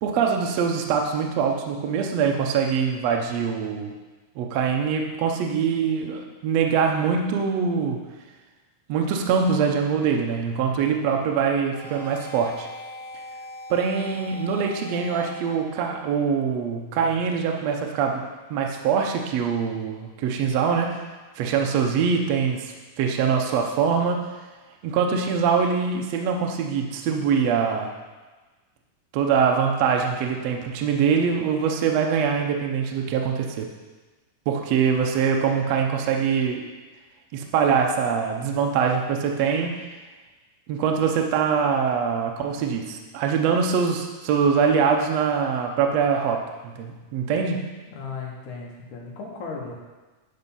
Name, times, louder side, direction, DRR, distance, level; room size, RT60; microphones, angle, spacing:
voice 1, 0.0-3.9 4.3-8.0 8.9-12.7 13.7-18.2 18.5-21.0 21.4-24.2 24.8-27.9 29.1-33.7 34.5-36.6 37.3-39.8 40.7-47.7, right 6 dB, 75° right, 2 dB, 1.6 m, -23 dB
sound 1, 11.0-16.1, left 1 dB, 20° right, 1.2 m, -41 dB
voice 2, 47.9-49.7, left 4 dB, 65° left, -2 dB, 2.7 m, -36 dB
9.8 x 5.3 x 5.5 m, 1.3 s
omnidirectional pair, 4.0 m